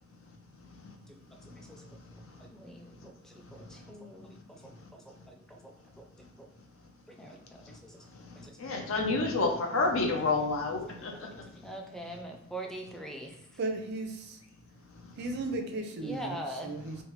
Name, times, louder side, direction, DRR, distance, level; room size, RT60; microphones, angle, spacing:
voice 1, 1.5-1.8 2.1-6.1 6.4-6.5 7.1-8.0 8.4-8.8 10.8-13.4 16.0-16.7, right 1 dB, 5° left, 2 dB, 0.4 m, -44 dB
voice 2, 8.6-11.1, left 3 dB, 80° left, 3 dB, 0.6 m, -28 dB
voice 3, 13.6-14.4 15.2-16.4 16.6-17.0, right 2 dB, 55° right, 5 dB, 0.4 m, -35 dB
3.2 x 2.1 x 3.0 m, 0.84 s
head